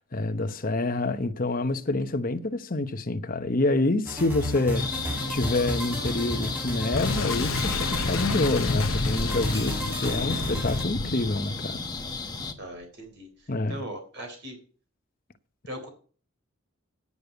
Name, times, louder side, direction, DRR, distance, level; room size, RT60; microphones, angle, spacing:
voice 1, 0.0-4.9 5.3-11.8 13.5-13.8, left 2 dB, 40° left, 0.9 m, -27 dB
sound 1, 4.1-10.8, equal, 10° right, 3.2 m, -33 dB
sound 2, 4.7-12.5, left 4 dB, 20° left, 1.1 m, -34 dB
Boom, 6.9-12.5, left 3 dB, 75° left, 0.8 m, -31 dB
voice 2, 12.6-13.3 13.7-14.6 15.7-15.9, right 1 dB, 55° right, 3.8 m, -39 dB
9.6 x 6.9 x 8.1 m
head